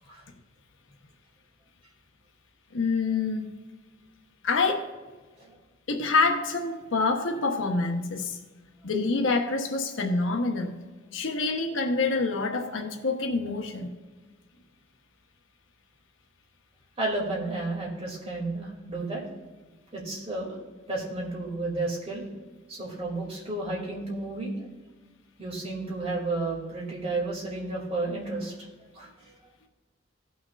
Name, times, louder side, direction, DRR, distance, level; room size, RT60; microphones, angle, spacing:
voice 1, 2.7-3.5 4.4-4.9 5.9-8.4 8.8-10.7 11.1-13.9, left 3 dB, 75° left, 3 dB, 1.0 m, -26 dB
voice 2, 17.0-19.2 19.9-20.6 20.9-22.2 22.7-24.7 25.4-28.7 28.9-29.4, right 2 dB, 30° right, -4 dB, 2.4 m, -32 dB
16.5 x 6.2 x 2.4 m, 1.3 s
head